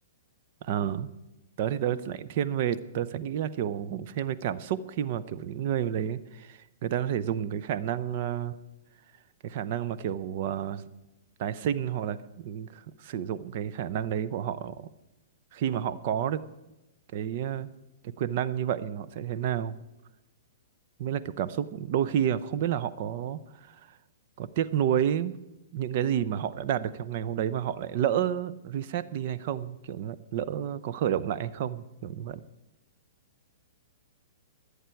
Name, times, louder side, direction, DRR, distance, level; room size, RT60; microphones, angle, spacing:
voice 1, 0.6-1.1 1.6-8.6 9.4-10.8 11.4-14.9 15.5-16.4 17.1-17.7 18.2-19.7 21.0-23.4 23.7-23.8 24.4-25.3 25.7-32.4, right 9 dB, 50° right, 13 dB, 0.7 m, -30 dB
24.5 x 8.2 x 4.6 m, 0.98 s
hypercardioid pair, 135°, 0 cm